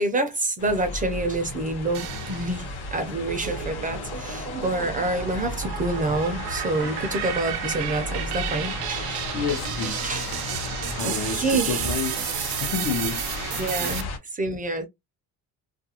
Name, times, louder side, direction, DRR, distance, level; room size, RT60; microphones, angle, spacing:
voice 1, 0.0-9.3 9.8-10.3 11.0-11.9 13.6-14.8, right 2 dB, 20° right, 0.5 m, -28 dB
sound 1, 0.6-14.2, left 2 dB, 80° left, 1.1 m, -34 dB
sound 2, 1.9-2.8 3.3-14.0, right 11 dB, 70° right, 0.6 m, -32 dB
voice 2, 9.3-10.4 11.0-13.2, left 6 dB, 55° left, 0.7 m, -30 dB
2.4 x 2.3 x 2.8 m
cardioid pair, 120°, 39 cm